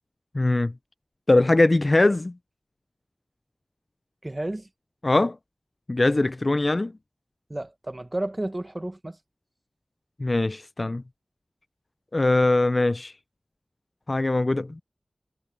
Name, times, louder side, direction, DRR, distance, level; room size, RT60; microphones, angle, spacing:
voice 1, 0.3-0.7 1.3-2.3 5.0-5.4 5.9-6.9 10.2-11.0 12.1-13.1 14.1-14.8, left 2 dB, 40° left, 0.3 m, -21 dB
voice 2, 4.2-4.7 7.5-9.2, right 1 dB, 30° right, 1.0 m, -32 dB
wide cardioid pair, 75°, 0 cm